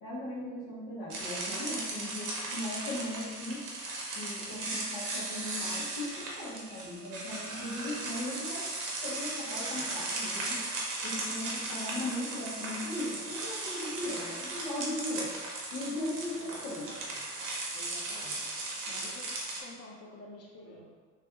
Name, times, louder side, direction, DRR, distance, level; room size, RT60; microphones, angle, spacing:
voice 1, 0.0-3.6 4.1-8.6 9.0-10.6 11.0-15.3 15.7-16.9, left 1 dB, 85° left, -6 dB, 1.0 m, -38 dB
sound 1, 1.1-19.6, right 2 dB, 75° right, 0.9 m, -37 dB
voice 2, 16.3-17.4 17.7-20.9, left 1 dB, 40° left, -3 dB, 0.8 m, -50 dB
3.2 x 2.9 x 2.5 m, 1.5 s
supercardioid pair, 75°, 37 cm